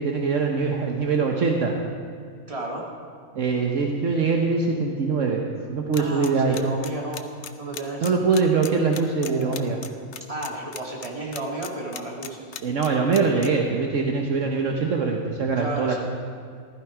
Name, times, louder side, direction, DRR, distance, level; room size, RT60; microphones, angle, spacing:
voice 1, 0.0-1.7 3.3-5.4 5.7-6.6 8.0-9.8 12.6-16.0, right 4 dB, 65° right, 1 dB, 1.3 m, -23 dB
voice 2, 2.5-2.8 6.0-7.3 7.6-8.2 9.2-9.8 10.3-12.6 15.6-16.0, right 2 dB, 25° right, -2 dB, 2.3 m, -33 dB
sound 1, 5.9-13.5, left 8 dB, 60° left, 1.0 m, -36 dB
15.0 x 13.0 x 5.0 m, 2.2 s
omnidirectional pair, 1.5 m